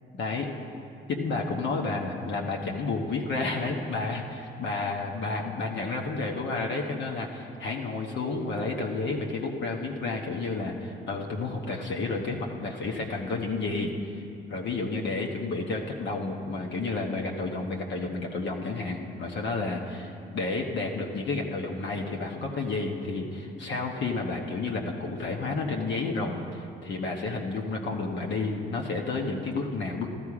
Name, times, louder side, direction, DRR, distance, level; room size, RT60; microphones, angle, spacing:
voice 1, 0.1-0.5 1.1-13.9 14.5-30.1, left 3 dB, 65° left, 0 dB, 1.3 m, -31 dB
13.5 x 13.0 x 4.9 m, 2.5 s
cardioid pair, 90°, 20 cm